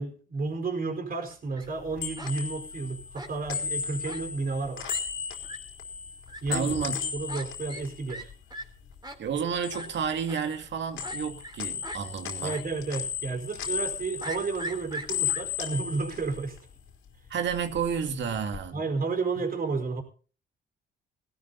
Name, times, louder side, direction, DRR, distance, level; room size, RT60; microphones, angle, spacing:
voice 1, 0.0-4.9 6.4-8.3 12.4-16.6 18.7-20.0, right 4 dB, 45° right, 4.9 m, -32 dB
Fowl, 1.3-1.7 2.2-2.3 3.1-3.6 4.0-4.2 4.5-4.6 4.8-5.0 5.4-5.6 6.3-6.4 7.3-7.4 7.7-7.8 8.1-8.2 8.5-8.6 9.0-9.2 9.7-9.9 10.3-10.4 11.0-11.6 11.8-12.0 12.5-12.6 12.9-13.0 14.2-15.4, right 1 dB, 20° right, 3.6 m, -39 dB
sound 1, 1.7-9.0 9.3-10.7 11.0-17.0 17.3-18.6, left 7 dB, 80° left, 4.1 m, -36 dB
voice 2, 6.5-7.0 9.2-12.5 17.3-18.8 19.4-19.5, right 7 dB, 65° right, 2.3 m, -31 dB
19.5 x 12.5 x 4.1 m
cardioid pair, 90°, 20 cm